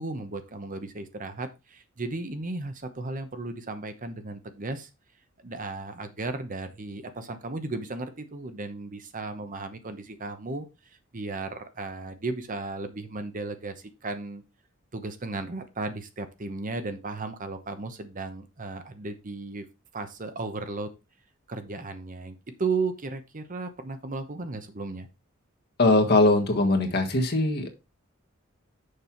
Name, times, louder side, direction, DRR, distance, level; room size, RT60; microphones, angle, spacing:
voice 1, 0.0-4.9 5.4-14.4 14.9-19.6 19.9-20.9 21.5-25.1, right 3 dB, 40° right, 9 dB, 0.9 m, -35 dB
voice 2, 25.8-27.7, left 2 dB, 50° left, 3 dB, 1.5 m, -21 dB
6.7 x 5.5 x 4.4 m, 0.27 s
head